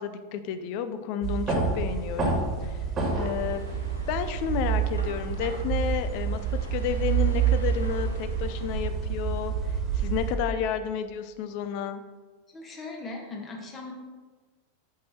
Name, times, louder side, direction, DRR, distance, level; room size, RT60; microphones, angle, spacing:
voice 1, 0.0-2.8 3.2-3.7 4.1-6.4 6.7-12.0, left 8 dB, 45° left, 10 dB, 0.5 m, -31 dB
sound 1, 1.2-10.4, right 6 dB, 25° right, 1.6 m, -28 dB
sound 2, 3.0-8.9, equal, 85° left, 1.0 m, -45 dB
voice 2, 12.5-13.9, left 3 dB, 25° left, 1 dB, 1.4 m, -39 dB
6.0 x 5.9 x 4.4 m, 1.4 s
figure-of-eight pair, 90°, 0 cm